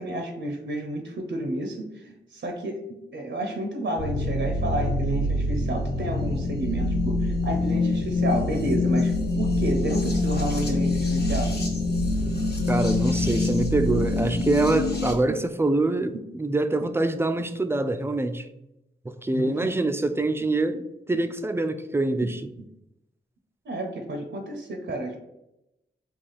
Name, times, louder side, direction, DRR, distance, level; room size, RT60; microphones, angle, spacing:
voice 1, 0.0-11.5 14.4-14.5 19.3-19.7 22.2-22.3 23.6-25.2, right 1 dB, 65° right, 0.6 m, -30 dB
sound 1, 4.0-15.1, left 2 dB, 55° left, 0.9 m, -25 dB
voice 2, 12.7-18.5 19.1-22.4, right 2 dB, 10° right, 0.3 m, -25 dB
3.3 x 2.4 x 3.9 m
cardioid pair, 45°, 20 cm